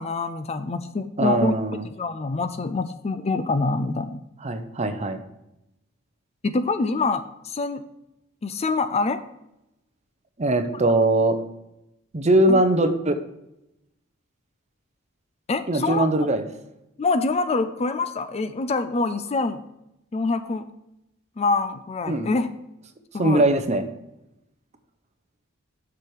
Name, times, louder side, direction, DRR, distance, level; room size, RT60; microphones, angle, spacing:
voice 1, 0.0-1.5 1.8-4.2 6.4-7.8 8.4-9.2 12.5-12.6 15.5-16.1 17.0-19.6 20.1-20.6 21.4-22.5 23.1-23.4, left 3 dB, 30° left, 11 dB, 0.4 m, -25 dB
voice 2, 1.2-1.9 4.4-5.2 10.4-11.4 12.1-13.2 15.7-16.4 22.1-22.3 23.2-23.8, right 1 dB, 35° right, 9 dB, 0.7 m, -21 dB
7.4 x 6.2 x 4.8 m, 0.87 s
head